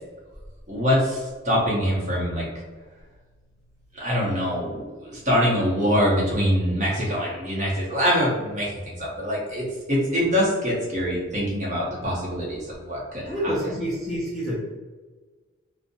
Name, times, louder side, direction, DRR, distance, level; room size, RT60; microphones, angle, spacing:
voice 1, 0.7-2.5 3.9-13.5, equal, 35° right, -5 dB, 0.7 m, -24 dB
voice 2, 13.3-14.6, equal, ahead, -8 dB, 0.4 m, -27 dB
2.6 x 2.0 x 2.6 m, 1.4 s
head